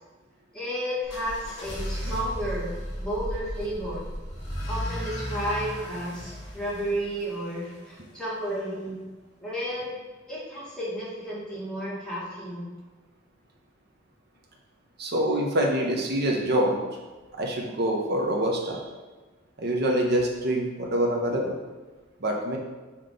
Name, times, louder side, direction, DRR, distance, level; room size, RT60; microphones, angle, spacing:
voice 1, 0.5-4.1 4.7-9.0 9.4-10.0 10.3-12.7, equal, 5° left, -8 dB, 1.9 m, -32 dB
sound 1, 1.0-7.9, equal, 60° left, 1.9 m, -35 dB
voice 2, 15.0-16.8 17.4-18.8 19.6-21.6 22.2-22.6, right 1 dB, 55° right, 0 dB, 0.9 m, -25 dB
5.9 x 3.1 x 5.1 m, 1.3 s
head